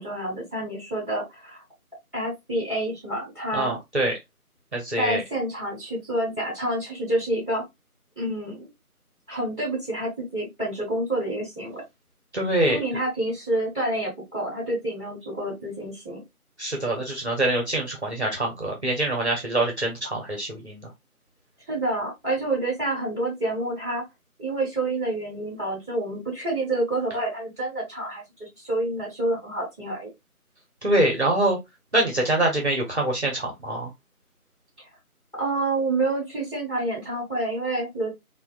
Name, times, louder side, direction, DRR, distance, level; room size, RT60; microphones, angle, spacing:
voice 1, 0.0-1.6 2.1-3.8 5.0-7.6 8.2-8.7 9.3-11.8 12.7-16.2 21.7-24.0 24.4-30.1 35.4-38.1, right 1 dB, 10° left, 1.9 m, -28 dB
voice 2, 3.5-4.1 4.7-5.2 12.3-12.8 16.6-20.9 30.8-31.6 31.9-33.9, right 1 dB, 50° right, 0.8 m, -24 dB
3.8 x 2.2 x 2.3 m
figure-of-eight pair, 165°, 44 cm